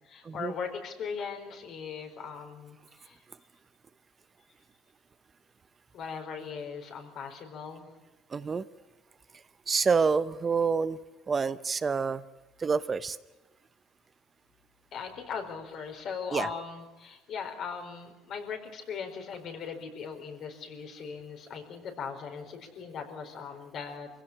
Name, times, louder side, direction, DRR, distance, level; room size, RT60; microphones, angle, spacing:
voice 1, 0.0-3.2 5.9-7.9 14.9-24.1, left 6 dB, 55° left, 4 dB, 4.5 m, -39 dB
voice 2, 8.3-8.6 9.7-11.0 11.3-12.2 12.6-13.2 16.3-16.5, right 5 dB, 30° right, 14 dB, 0.7 m, -27 dB
24.0 x 16.5 x 9.9 m, 1.1 s
cardioid pair, 105°, 0 cm